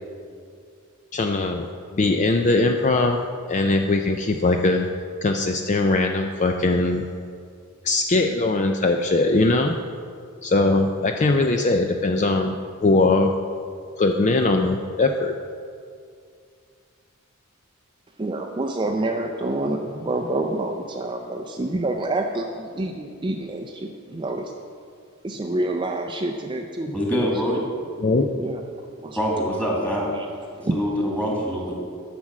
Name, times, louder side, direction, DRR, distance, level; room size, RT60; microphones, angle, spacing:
voice 1, 1.1-1.7 1.9-3.2 3.5-4.9 5.2-7.0 7.8-9.7 10.4-12.6 12.8-13.3 14.0-15.3 28.0-28.3, left 2 dB, 35° left, 5 dB, 0.4 m, -20 dB
voice 2, 18.2-24.5 25.2-27.3 28.3-28.6 29.0-29.6 30.1-30.3 30.5-30.7, right 2 dB, 20° right, 3 dB, 0.5 m, -28 dB
voice 3, 26.9-27.6 29.2-30.1 30.7-31.7, equal, 5° left, -3 dB, 2.1 m, -24 dB
10.5 x 6.1 x 7.3 m, 2.3 s
head